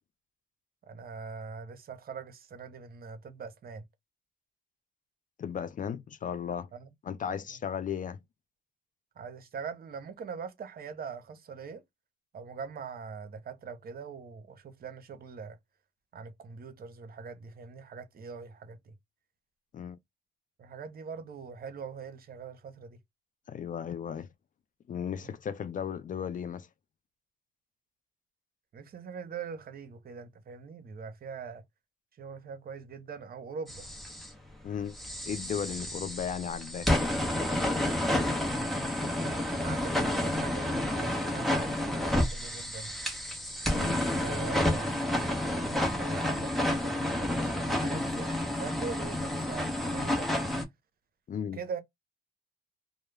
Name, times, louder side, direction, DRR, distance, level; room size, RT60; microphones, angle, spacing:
voice 1, 0.9-3.9 6.7-6.9 9.2-11.8 12.3-15.6 16.1-19.0 20.6-23.0 25.2-25.4 28.7-31.6 32.2-33.9 39.2-42.9 44.1-45.0 45.5-50.3 51.5-51.8, right 5 dB, 50° right, 0.7 m, -42 dB
voice 2, 5.4-6.7 7.0-8.2 19.7-20.0 23.5-24.3 24.9-26.7 34.6-35.0 35.3-36.9 43.7-44.0 51.3-51.6, left 8 dB, 40° left, 0.4 m, -35 dB
sound 1, 33.7-34.3 34.9-50.6, left 1 dB, ahead, 0.9 m, -30 dB
2.2 x 2.1 x 3.2 m
cardioid pair, 90°, 20 cm